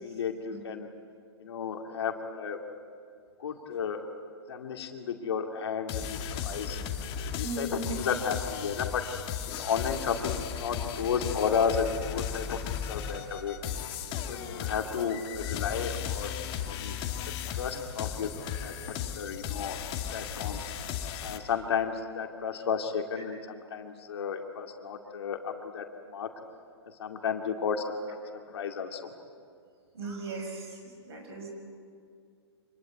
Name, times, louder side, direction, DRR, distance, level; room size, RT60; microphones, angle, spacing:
voice 1, 0.0-0.9 1.4-2.6 3.4-4.1 4.5-6.8 7.4-9.0 9.6-13.6 14.3-16.3 16.7-17.0 17.5-18.7 19.1-19.8 20.1-20.6 21.2-26.3 27.0-28.0 28.5-29.1, left 6 dB, 65° left, 4 dB, 2.5 m, -33 dB
sound 1, 5.9-21.4, left 9 dB, 35° left, 2.4 m, -36 dB
voice 2, 7.4-8.0 29.9-31.5, right 2 dB, 60° right, 2 dB, 6.0 m, -37 dB
26.0 x 21.0 x 9.5 m, 2.2 s
hypercardioid pair, 120°, 15 cm